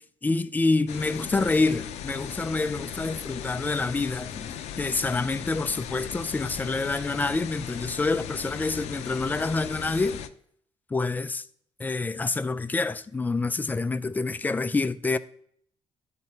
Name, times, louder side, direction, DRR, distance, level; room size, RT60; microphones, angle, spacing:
voice 1, 0.0-10.2 10.9-11.4 11.8-15.2, left 3 dB, 15° left, 0.3 m, -27 dB
sound 1, 0.9-10.3, left 9 dB, 90° left, 0.5 m, -38 dB
11.5 x 4.4 x 2.7 m
cardioid pair, 120°, 11 cm